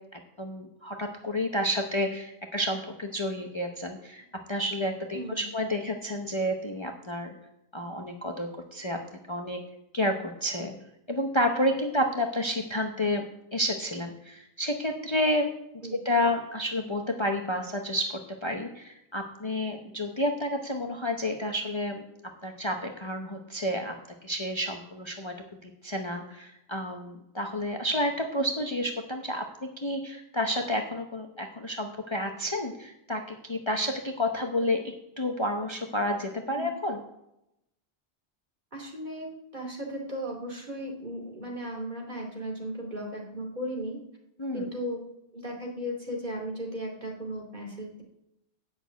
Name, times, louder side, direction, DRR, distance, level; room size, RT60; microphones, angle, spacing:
voice 1, 0.1-7.3 7.7-9.0 9.3-9.6 9.9-10.1 10.4-10.7 11.1-13.2 13.5-15.5 16.0-22.0 22.4-23.9 24.2-25.3 25.6-34.8 35.2-37.0 44.4-44.6, left 1 dB, 30° left, 3 dB, 0.9 m, -30 dB
voice 2, 5.1-5.5 15.8-15.9 36.5-36.7 38.7-44.0 44.5-45.0 45.3-48.0, equal, 45° right, 0 dB, 2.6 m, -36 dB
8.8 x 6.6 x 8.1 m, 0.84 s
omnidirectional pair, 1.1 m